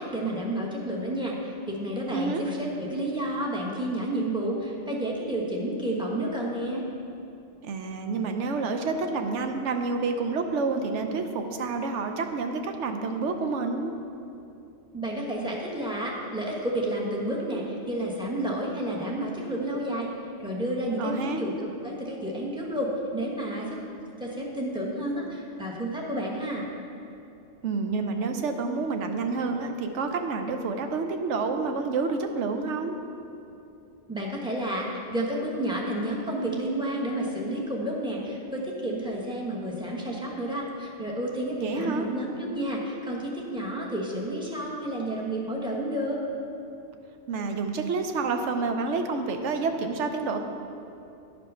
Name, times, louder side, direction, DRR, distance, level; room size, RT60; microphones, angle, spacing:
voice 1, 0.0-6.9 14.9-20.1 20.4-23.8 24.2-26.6 34.1-46.2, right 1 dB, 5° right, -4 dB, 1.2 m, -30 dB
voice 2, 2.1-2.4 7.6-13.9 21.0-21.4 27.6-33.0 41.6-42.1 47.3-50.4, right 4 dB, 75° right, 5 dB, 1.0 m, -29 dB
10.5 x 5.3 x 5.5 m, 2.7 s
omnidirectional pair, 1.3 m